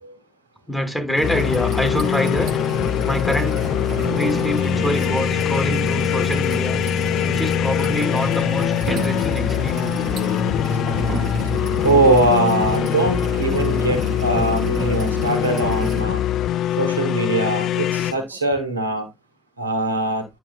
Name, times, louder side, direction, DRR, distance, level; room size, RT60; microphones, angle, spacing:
voice 1, 0.7-2.5 3.1-3.6 4.1-6.8 7.3-10.2 11.5-11.6, equal, 10° left, 2.7 m, -26 dB
sound 1, 1.2-18.1, left 12 dB, 60° left, 0.4 m, -23 dB
sound 2, 1.2-16.0, right 6 dB, 60° right, 0.6 m, -30 dB
voice 2, 11.8-16.2 16.8-19.1 19.6-20.2, right 2 dB, 90° right, 1.0 m, -21 dB
8.7 x 5.9 x 2.3 m
figure-of-eight pair, 45°, 0 cm